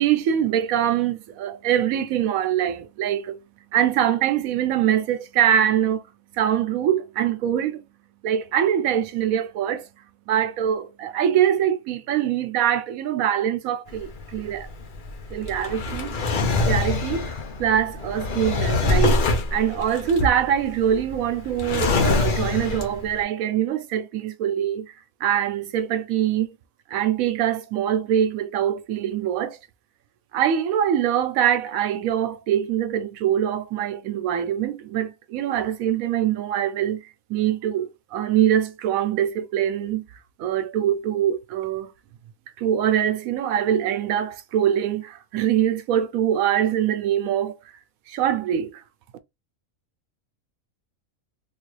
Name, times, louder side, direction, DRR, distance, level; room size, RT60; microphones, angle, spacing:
voice 1, 0.0-3.4 3.7-6.0 6.3-7.8 8.2-9.9 10.3-14.7 15.3-16.1 16.6-17.3 17.6-19.2 19.5-24.9 25.2-26.5 26.9-29.6 30.3-40.0 40.4-41.9 42.6-47.5 48.1-48.8, right 10 dB, 80° right, 1.0 m, -23 dB
Drawer open or close, 13.9-23.2, left 3 dB, 50° left, 0.7 m, -25 dB
3.5 x 2.4 x 3.1 m
omnidirectional pair, 1.5 m